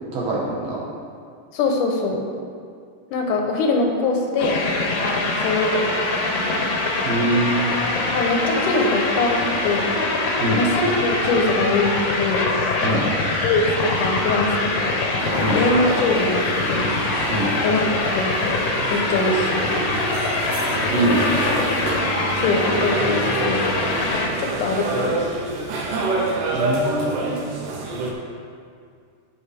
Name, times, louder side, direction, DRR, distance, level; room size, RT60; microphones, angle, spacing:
voice 1, 0.1-0.8 7.0-7.7 10.4-10.6 12.8-13.1 15.4-15.6 17.3-17.5 20.9-21.6 26.5-27.4, right 1 dB, 60° right, -5 dB, 2.3 m, -23 dB
voice 2, 1.5-2.2 3.1-4.6 5.4-6.0 6.3-6.6 8.1-9.9 10.6-12.5 13.4-15.0 15.5-16.9 17.6-18.6 18.9-19.6 22.3-23.7 24.4-25.2, left 3 dB, 80° left, 2 dB, 2.3 m, -23 dB
sound 1, 4.4-24.3, left 2 dB, 65° left, 1.7 m, -23 dB
sound 2, 15.2-28.1, right 2 dB, 80° right, 2.5 m, -28 dB
15.0 x 5.1 x 3.4 m, 2.2 s
omnidirectional pair, 3.7 m